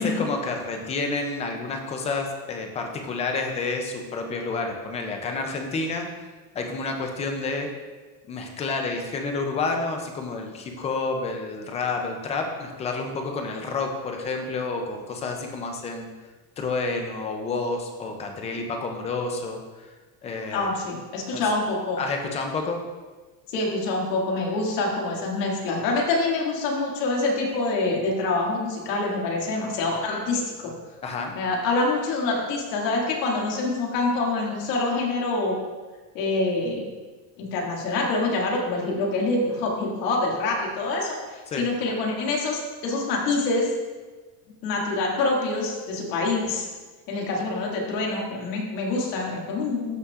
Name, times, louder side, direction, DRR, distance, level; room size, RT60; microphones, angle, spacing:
voice 1, 0.0-6.1 6.5-7.7 8.3-16.1 16.6-19.9 20.2-20.7 21.3-21.4 22.0-22.8 31.0-31.3 41.5-41.7, left 3 dB, 15° left, 3 dB, 0.3 m, -29 dB
voice 2, 20.5-22.0 23.5-30.7 31.3-35.6 36.1-36.9 37.4-43.7 44.6-46.7 47.1-50.0, left 3 dB, 80° left, -1 dB, 2.1 m, -26 dB
13.5 x 5.6 x 2.4 m, 1.3 s
cardioid pair, 160°, 48 cm